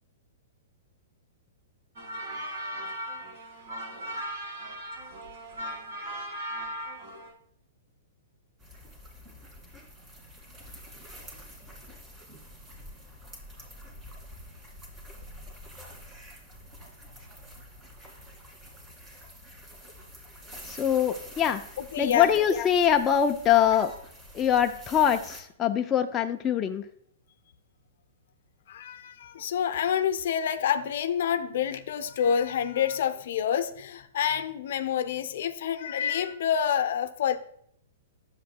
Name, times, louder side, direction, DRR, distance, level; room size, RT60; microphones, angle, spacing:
sound 1, 2.0-7.3, equal, 60° right, 3.5 m, -37 dB
sound 2, 8.6-25.4, equal, 20° right, 2.2 m, -47 dB
voice 1, 20.6-21.6 22.0-23.9 24.3-26.8, left 9 dB, 25° left, 5 dB, 0.4 m, -23 dB
voice 2, 21.8-22.3 28.7-37.4, left 8 dB, 65° left, 9 dB, 0.6 m, -28 dB
10.0 x 7.4 x 2.2 m, 0.68 s
hypercardioid pair, 115°, 0 cm